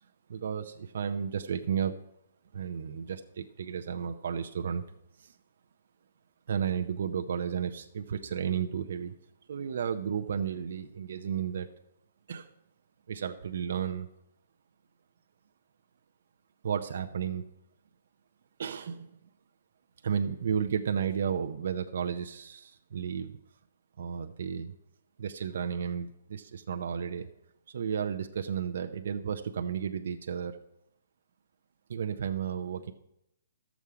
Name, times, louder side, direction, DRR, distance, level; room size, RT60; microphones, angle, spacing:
voice 1, 0.3-1.9 2.5-4.8 5.2-5.3 6.5-9.1 9.5-11.7 12.3-12.5 13.1-14.1 16.6-17.4 18.6-19.1 20.0-23.4 24.0-24.7 25.2-27.3 27.7-30.6 31.9-32.9, right 7 dB, 65° right, 6 dB, 0.6 m, -33 dB
12.5 x 7.1 x 4.8 m, 0.81 s
hypercardioid pair, 165°, 0 cm